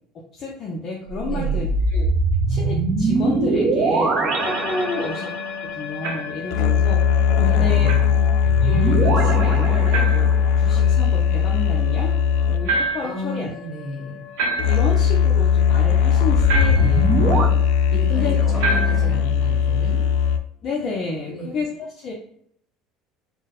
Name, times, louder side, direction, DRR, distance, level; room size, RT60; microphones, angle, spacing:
voice 1, 0.3-2.1 2.5-5.3 5.7-7.0 7.4-7.9 8.6-12.1 12.5-13.5 14.7-17.5 18.1-18.5 20.6-22.1, left 3 dB, 35° left, -1 dB, 0.5 m, -30 dB
sound 1, 1.1-5.6 8.4-10.5 16.2-17.5, right 3 dB, 45° right, 0.6 m, -22 dB
voice 2, 1.3-1.7 7.4-8.2 13.0-14.2 17.9-20.1 21.3-21.5, equal, 5° left, -6 dB, 1.5 m, -33 dB
sound 2, 4.4-20.4, left 7 dB, 85° left, 0.3 m, -20 dB
sound 3, 6.0-6.4 7.9-8.1 9.9-10.3 12.7-13.2 14.4-15.0 16.5-17.0 18.6-19.1, right 2 dB, 80° right, 1.0 m, -25 dB
3.8 x 2.0 x 4.0 m, 0.68 s
cardioid pair, 160°, 0 cm